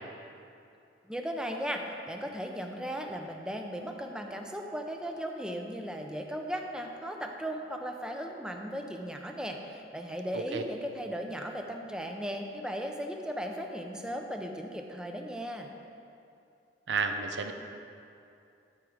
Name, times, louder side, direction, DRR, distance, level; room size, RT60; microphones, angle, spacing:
voice 1, 1.1-15.7, equal, 5° right, 3 dB, 0.6 m, -37 dB
voice 2, 16.9-17.5, right 5 dB, 85° right, 6 dB, 0.7 m, -31 dB
12.5 x 4.6 x 5.0 m, 2.6 s
head